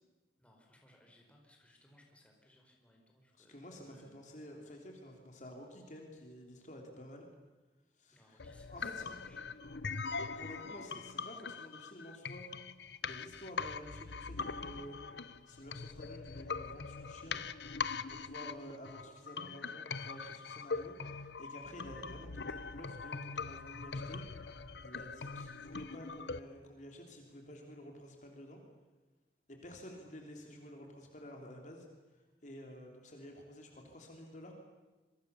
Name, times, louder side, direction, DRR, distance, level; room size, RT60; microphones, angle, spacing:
voice 1, 0.4-4.1 8.1-9.6, left 1 dB, 5° left, 1 dB, 4.8 m, -65 dB
voice 2, 3.4-7.3 8.0-8.4 8.7-9.1 10.3-12.5 13.0-15.0 15.5-17.4 18.1-24.2 24.8-28.6 29.5-31.9 32.4-34.5, equal, 45° left, 2 dB, 3.4 m, -51 dB
sound 1, 8.4-26.4, left 5 dB, 80° left, 0.9 m, -42 dB
27.0 x 23.5 x 7.0 m, 1.2 s
head